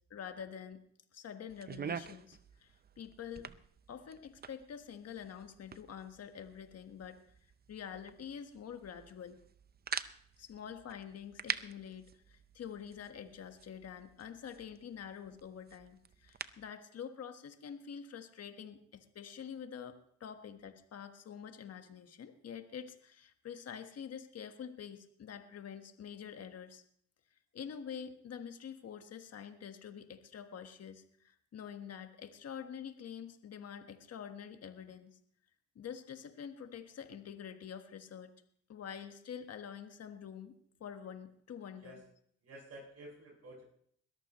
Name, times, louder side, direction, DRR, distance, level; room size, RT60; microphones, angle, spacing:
voice 1, 0.1-0.8 1.1-3.5 3.9-7.3 7.7-9.4 10.4-26.8 27.5-35.2 35.7-38.3 38.7-40.5 40.8-42.0, left 8 dB, 55° left, 7 dB, 1.5 m, -47 dB
sound 1, 1.5-16.7, right 7 dB, 30° right, 0.6 m, -47 dB
voice 2, 41.7-42.0 42.4-43.6, right 1 dB, 55° right, -1 dB, 7.5 m, -51 dB
21.5 x 13.5 x 3.1 m, 0.63 s
cardioid pair, 90°, 30 cm